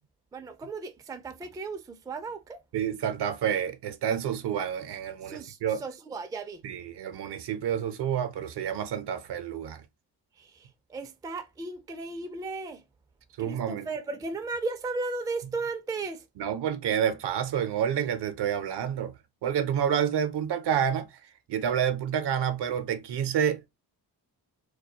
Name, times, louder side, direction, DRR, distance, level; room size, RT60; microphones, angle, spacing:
voice 1, 0.3-2.6 5.2-6.6 10.4-12.8 13.4-16.2, right 3 dB, 10° right, 0.3 m, -35 dB
voice 2, 2.7-5.8 6.6-9.8 13.4-13.9 16.4-19.1 19.4-21.1 21.5-23.7, right 8 dB, 65° right, 0.6 m, -29 dB
2.2 x 2.2 x 2.6 m
supercardioid pair, 55°, 44 cm